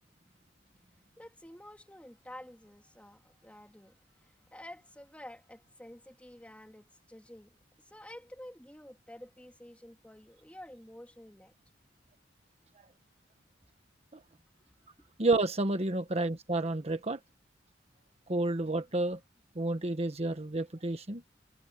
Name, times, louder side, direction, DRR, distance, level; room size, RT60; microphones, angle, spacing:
voice 1, 1.2-3.9 4.2-7.6 7.9-11.5 15.0-15.1, left 1 dB, 5° left, 2.6 m, -50 dB
voice 2, 15.2-17.2 18.3-19.2 19.5-21.2, right 2 dB, 35° right, 1.3 m, -30 dB
head